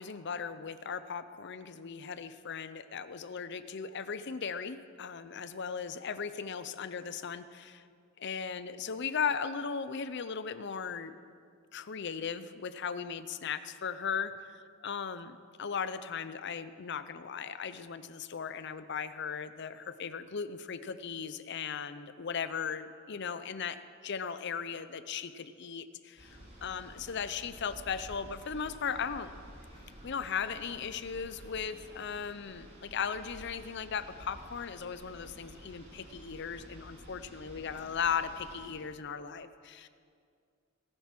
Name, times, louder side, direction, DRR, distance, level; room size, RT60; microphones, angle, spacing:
voice 1, 0.0-7.8 8.2-11.1 11.7-23.8 24.0-29.3 30.0-39.9, left 6 dB, 60° left, 13 dB, 0.6 m, -37 dB
sound 1, 26.2-38.7, equal, 35° right, 3.7 m, -52 dB
18.5 x 9.0 x 6.0 m, 2.2 s
head